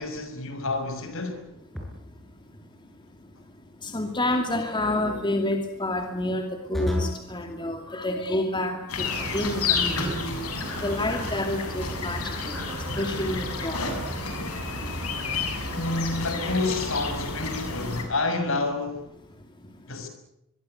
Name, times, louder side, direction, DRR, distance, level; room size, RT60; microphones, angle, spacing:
voice 1, 0.0-1.4 15.7-19.0 19.9-20.1, left 2 dB, 60° left, 6.1 m, -29 dB
sound 1, 1.7-2.2 4.8-5.2 6.7-7.3 9.7-10.5, left 1 dB, ahead, 7.5 m, -32 dB
voice 2, 3.8-9.1 9.3-10.0 10.8-12.5 13.0-13.8, left 1 dB, 20° left, 2.6 m, -28 dB
sound 2, 8.9-18.0, left 3 dB, 75° left, 7.2 m, -30 dB
24.0 x 23.5 x 8.0 m
head